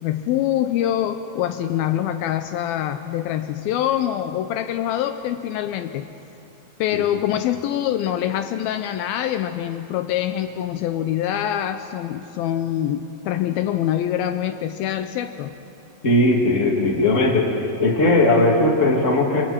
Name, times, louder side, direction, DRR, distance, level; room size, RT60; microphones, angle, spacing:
voice 1, 0.0-6.1 6.8-15.6, left 11 dB, 80° left, 9 dB, 2.5 m, -25 dB
voice 2, 16.0-17.5 17.8-19.4, left 2 dB, 20° left, -1 dB, 2.7 m, -18 dB
29.5 x 28.5 x 4.5 m, 2.8 s
omnidirectional pair, 4.4 m